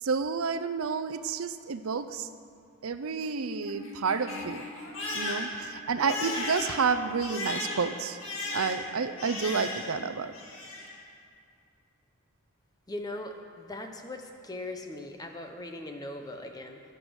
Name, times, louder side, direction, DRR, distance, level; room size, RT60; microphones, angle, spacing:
voice 1, 0.0-2.3 2.8-4.6 5.1-8.2 8.5-10.3, right 5 dB, 75° right, 11 dB, 0.6 m, -30 dB
Crying sobbing, 3.0-10.0 10.3-11.0, left 2 dB, 65° left, 2.2 m, -37 dB
voice 2, 12.9-16.8, left 1 dB, 15° left, 4 dB, 0.9 m, -39 dB
11.5 x 10.5 x 6.3 m, 2.3 s
head